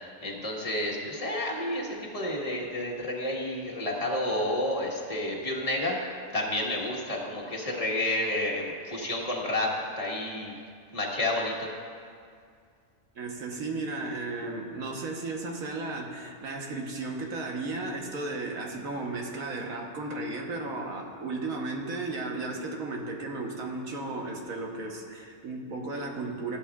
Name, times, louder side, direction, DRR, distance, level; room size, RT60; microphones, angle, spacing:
voice 1, 0.2-6.0 6.3-9.7 10.0-10.5 10.9-11.7, left 1 dB, 25° left, -3 dB, 1.5 m, -30 dB
voice 2, 13.1-26.6, right 2 dB, 85° right, 1 dB, 1.6 m, -34 dB
15.5 x 11.5 x 2.4 m, 2.2 s
omnidirectional pair, 1.4 m